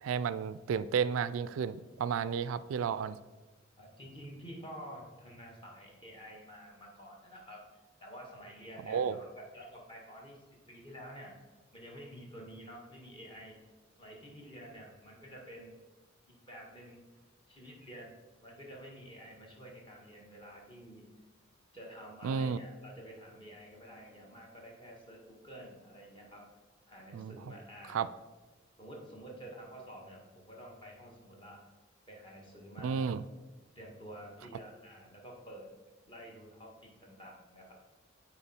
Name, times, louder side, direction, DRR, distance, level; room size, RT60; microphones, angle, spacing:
voice 1, 0.0-3.2 8.9-9.2 22.2-22.6 27.1-27.4 27.9-28.1 32.8-33.2, right 6 dB, 80° right, 15 dB, 0.3 m, -32 dB
voice 2, 3.8-10.4 10.7-11.3 11.7-13.6 14.0-15.7 16.3-17.0 17.5-21.1 21.7-26.5 26.9-28.1 28.8-31.6 32.1-33.1 33.8-35.7 36.1-37.7, equal, 25° left, -2 dB, 1.7 m, -49 dB
8.7 x 4.5 x 4.4 m, 1.2 s
head